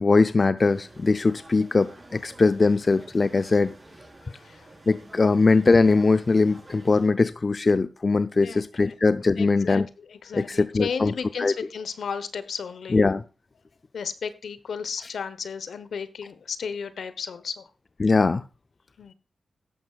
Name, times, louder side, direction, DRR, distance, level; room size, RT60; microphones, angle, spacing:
voice 1, 0.0-3.7 4.9-9.9 10.3-11.1 11.4-11.5 12.9-13.2 18.0-18.4, left 3 dB, 45° left, 12 dB, 0.5 m, -21 dB
sound 1, 0.6-7.1, right 1 dB, 40° right, 4.3 m, -49 dB
voice 2, 4.2-4.7 8.4-8.9 9.4-13.0 13.9-17.7 19.0-19.1, left 6 dB, 80° left, 13 dB, 1.0 m, -34 dB
13.5 x 11.0 x 2.4 m, 0.31 s
supercardioid pair, 40°, 0 cm